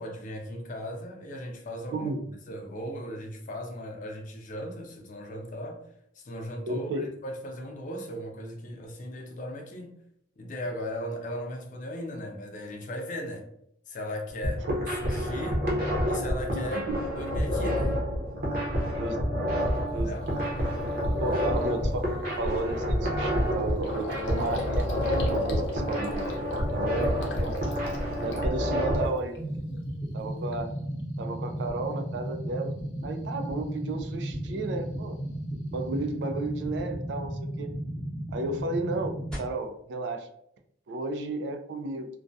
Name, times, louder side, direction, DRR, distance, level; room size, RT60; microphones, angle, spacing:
voice 1, 0.0-2.1 2.5-5.8 6.2-10.0 10.4-13.5 13.9-15.7 16.0-16.9 17.2-18.0 19.9-20.3 21.2-21.5 26.9-27.2, equal, 45° left, 0.5 m, -37 dB
voice 2, 6.7-7.1 14.7-14.8 16.9-17.0 18.9-19.2 19.9-20.1 21.2-22.0 22.4-24.9 25.3-26.2 26.7-26.9 27.4-27.6 28.2-29.4 30.1-30.7 31.2-35.2 35.7-37.7 38.3-40.3 40.9-42.1, right 2 dB, 75° right, 0.3 m, -33 dB
sound 1, 14.3-29.1, equal, 55° right, 0.7 m, -28 dB
Gurgling, 19.7-19.8 20.3-20.5 20.9-21.1 21.3-29.4 29.7-30.3, left 2 dB, 90° left, 0.6 m, -38 dB
sound 2, 29.4-39.4, right 1 dB, 5° left, 0.7 m, -34 dB
2.3 x 2.2 x 2.5 m
head